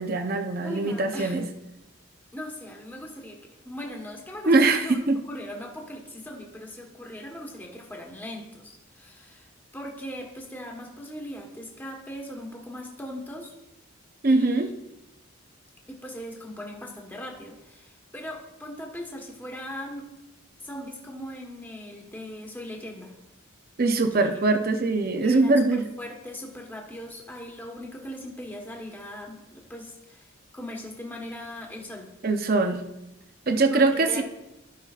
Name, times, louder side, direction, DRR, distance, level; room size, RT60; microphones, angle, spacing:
voice 1, 0.0-1.4 4.5-5.2 14.2-14.7 23.8-25.9 32.2-32.8 33.5-34.2, right 3 dB, 45° right, 6 dB, 0.6 m, -22 dB
voice 2, 0.6-1.5 2.3-3.4 3.6-4.5 4.8-5.0 5.3-13.5 14.2-14.7 15.9-20.1 20.6-23.1 24.1-24.4 25.2-25.6 26.0-32.1 33.7-34.2, equal, 10° left, 0 dB, 1.3 m, -39 dB
16.0 x 5.6 x 2.4 m, 0.93 s
head